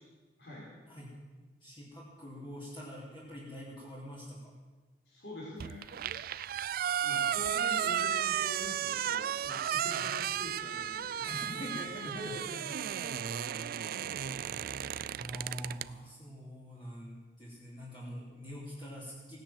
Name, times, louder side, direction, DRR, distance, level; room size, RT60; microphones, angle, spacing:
voice 1, 0.4-0.7 5.1-5.9 7.0-11.4, left 1 dB, 70° left, -5 dB, 4.5 m, -45 dB
voice 2, 1.6-4.5 9.9-10.0 11.2-12.8 15.1-19.4, equal, 30° left, -6 dB, 3.1 m, -44 dB
sound 1, 5.6-15.9, right 9 dB, 55° right, 0.4 m, -34 dB
16.5 x 10.5 x 7.4 m, 1.3 s
head